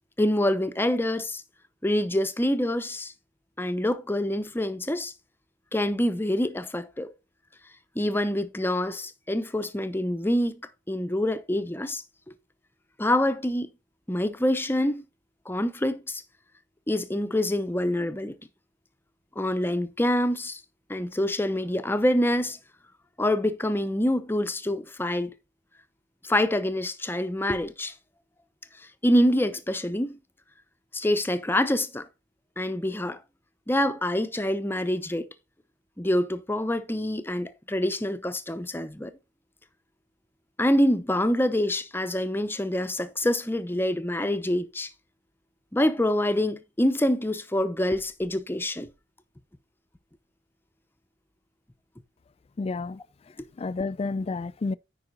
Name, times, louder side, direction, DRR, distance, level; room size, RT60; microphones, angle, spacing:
voice 1, 0.2-1.4 1.8-3.1 3.6-5.1 5.7-7.1 8.0-10.6 10.9-12.0 13.0-13.7 14.1-15.0 15.5-16.2 16.9-18.4 19.4-20.6 20.9-22.6 23.2-25.3 26.2-27.9 29.0-30.2 30.9-32.0 32.6-33.2 33.7-35.3 36.0-39.1 40.6-44.9 45.7-48.9, left 1 dB, 15° left, 0.7 m, -26 dB
voice 2, 52.6-53.0 53.6-54.7, left 3 dB, 35° left, 0.3 m, -30 dB
9.6 x 4.9 x 4.0 m
head